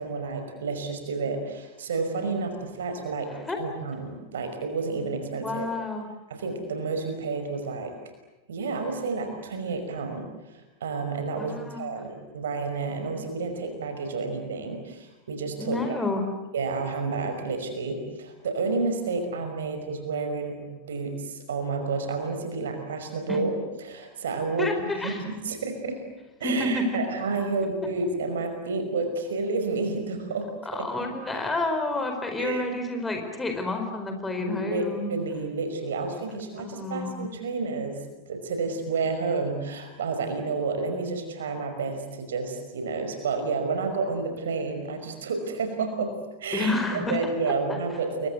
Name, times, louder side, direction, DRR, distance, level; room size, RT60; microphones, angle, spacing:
voice 1, 0.0-3.3 3.6-5.7 6.3-7.9 8.5-16.0 16.5-26.1 26.4-31.1 32.4-32.7 34.4-38.0 38.3-46.1 46.4-48.3, right 4 dB, 65° right, 7 dB, 5.5 m, -30 dB
voice 2, 5.4-6.1 11.4-12.0 15.6-16.2 23.3-23.4 24.6-25.3 26.4-27.0 30.6-35.1 36.6-37.2 46.5-47.2 47.7-47.8, left 2 dB, 10° left, 5 dB, 4.7 m, -29 dB
29.0 x 23.5 x 8.2 m, 1.1 s
figure-of-eight pair, 90°, 0 cm